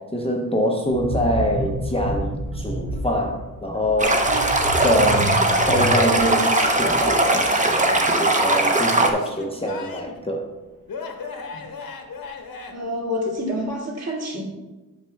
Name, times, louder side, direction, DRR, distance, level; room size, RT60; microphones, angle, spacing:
voice 1, 0.0-4.3 4.8-10.5, equal, 15° left, 1 dB, 0.6 m, -25 dB
sound 1, 0.8-8.3 8.5-8.7, equal, 85° right, 1.5 m, -30 dB
Stream, 4.0-9.1, right 2 dB, 20° right, 0.7 m, -19 dB
Male speech man speaking / Yell / Laughter, 5.7-7.8 8.5-10.2 10.9-12.7, left 4 dB, 70° left, 1.1 m, -36 dB
voice 2, 12.7-14.4, left 1 dB, 45° right, -3 dB, 2.1 m, -28 dB
8.3 x 6.4 x 3.3 m, 1.1 s
wide cardioid pair, 155°, 36 cm